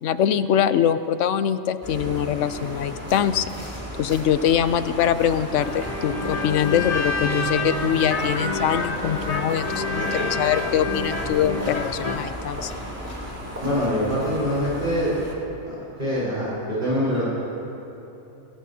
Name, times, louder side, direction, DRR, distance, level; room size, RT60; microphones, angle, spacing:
voice 1, 0.0-3.5 4.0-12.7, left 9 dB, 75° left, 12 dB, 1.0 m, -23 dB
sound 1, 1.8-15.3, equal, 10° right, 2.7 m, -34 dB
sound 2, 5.6-12.2, left 3 dB, 35° left, 0.8 m, -28 dB
voice 2, 13.6-15.1 15.6-15.7 16.0-17.2, equal, 45° right, -10 dB, 4.9 m, -24 dB
29.0 x 17.5 x 2.8 m, 3.0 s
omnidirectional pair, 1.3 m